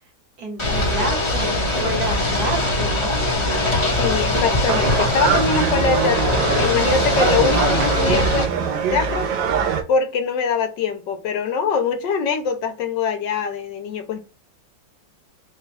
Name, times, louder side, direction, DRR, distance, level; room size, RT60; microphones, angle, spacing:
voice 1, 0.4-3.7, right 2 dB, 60° right, 1.7 m, -30 dB
Ocean / Boat Water vehicle, 0.6-8.4, left 1 dB, 20° left, 1.0 m, -22 dB
voice 2, 4.0-8.5 8.9-9.3 9.9-14.2, left 5 dB, 75° left, 1.3 m, -23 dB
sound 1, 4.7-9.8, right 7 dB, 75° right, 1.3 m, -22 dB
4.1 x 2.3 x 3.1 m
omnidirectional pair, 2.0 m